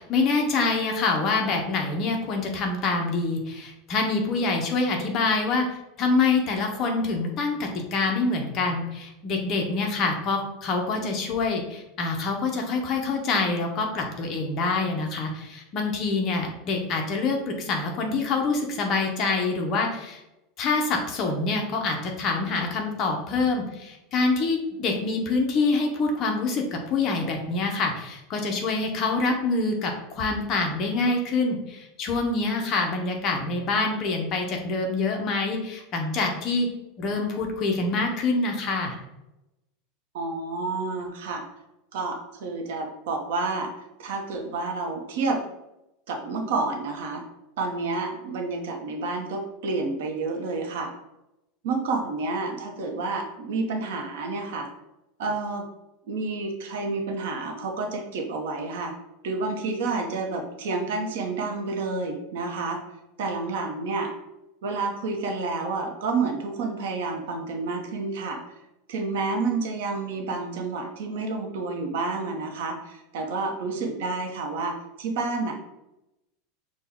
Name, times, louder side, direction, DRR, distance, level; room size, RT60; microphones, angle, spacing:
voice 1, 0.0-5.7 6.0-20.2 20.6-36.7 37.0-39.0, left 3 dB, 30° left, 2 dB, 0.7 m, -26 dB
voice 2, 40.1-41.4 41.9-43.7 44.0-45.4 46.1-47.2 47.6-50.9 51.6-54.7 55.2-55.7 56.1-58.9 59.2-62.8 63.2-64.1 64.6-68.4 68.9-75.5, right 3 dB, 70° right, 3 dB, 0.8 m, -29 dB
6.2 x 2.2 x 3.5 m, 0.93 s
supercardioid pair, 175°, 0 cm